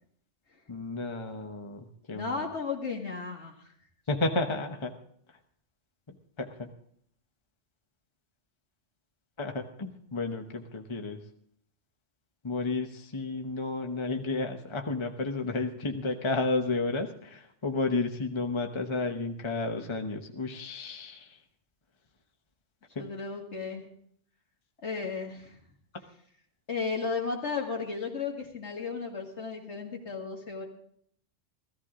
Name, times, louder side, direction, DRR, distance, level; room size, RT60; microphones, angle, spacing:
voice 1, 0.7-2.5 4.1-4.9 6.1-6.7 9.4-11.2 12.4-21.4 22.9-23.0, left 3 dB, 25° left, 4 dB, 1.0 m, -32 dB
voice 2, 2.1-3.6 23.0-23.8 24.8-25.6 26.7-30.6, left 4 dB, 65° left, 1 dB, 2.4 m, -34 dB
16.0 x 14.0 x 3.7 m, 0.66 s
omnidirectional pair, 1.3 m